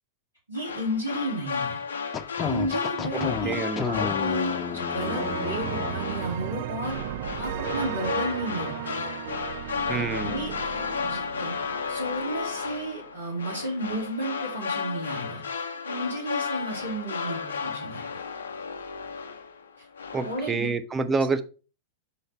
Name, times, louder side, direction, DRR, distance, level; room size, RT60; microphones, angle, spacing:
sound 1, 0.5-19.7 20.0-20.5, left 5 dB, 70° left, 0.6 m, -33 dB
voice 1, 0.5-1.8 2.4-7.0 7.3-9.0 9.8-10.5 11.0-11.5 11.9-15.4 15.8-18.2 19.8-19.9 20.2-20.7 21.0-21.1, right 1 dB, 80° right, -3 dB, 2.6 m, -33 dB
sound 2, 2.1-6.3, left 6 dB, 20° left, 0.6 m, -32 dB
voice 2, 3.1-4.2 9.9-10.5 20.1-21.4, right 4 dB, 15° right, 9 dB, 0.6 m, -28 dB
sound 3, 5.0-12.6, right 11 dB, 50° right, 0.3 m, -35 dB
5.6 x 3.2 x 5.5 m, 0.35 s
figure-of-eight pair, 90°, 0 cm